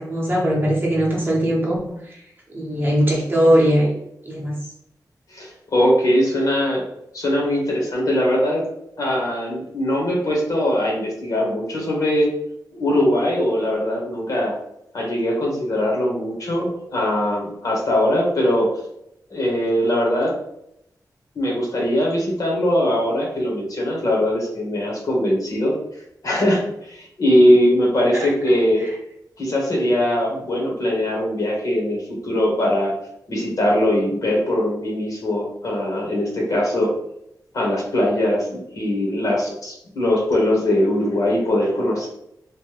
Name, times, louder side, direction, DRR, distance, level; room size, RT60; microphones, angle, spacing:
voice 1, 0.0-2.2 2.5-4.5 28.1-28.3 28.8-28.9, equal, 30° right, -3 dB, 0.8 m, -20 dB
voice 2, 5.3-6.8 7.1-8.6 9.0-12.3 12.7-14.5 14.9-18.7 19.3-20.3 21.3-25.7 26.2-28.8 29.4-32.9 33.3-36.9 37.5-42.1, left 1 dB, 55° left, -2 dB, 1.1 m, -21 dB
3.0 x 2.2 x 3.1 m, 0.78 s
wide cardioid pair, 160°, 7 cm